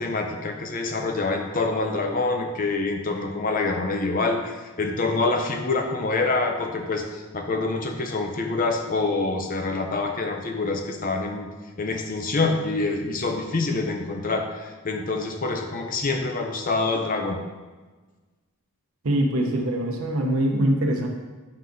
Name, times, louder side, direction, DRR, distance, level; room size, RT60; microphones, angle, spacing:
voice 1, 0.0-11.5 11.8-17.4, left 3 dB, 40° left, 4 dB, 0.6 m, -26 dB
voice 2, 19.0-21.1, right 1 dB, 75° right, 1 dB, 0.9 m, -23 dB
7.4 x 3.5 x 3.9 m, 1.3 s
head